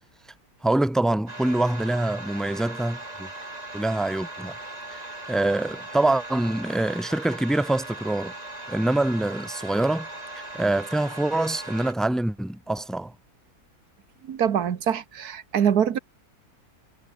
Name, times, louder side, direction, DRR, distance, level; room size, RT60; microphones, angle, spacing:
voice 1, 0.6-3.3 3.7-4.6 4.9-5.0 5.3-8.3 8.7-10.1 10.5-13.1, right 2 dB, ahead, 0.8 m, -25 dB
sound 1, 1.3-11.9, right 2 dB, 25° right, 3.2 m, -39 dB
voice 2, 14.2-16.0, right 8 dB, 80° right, 1.8 m, -24 dB
omnidirectional pair, 1.6 m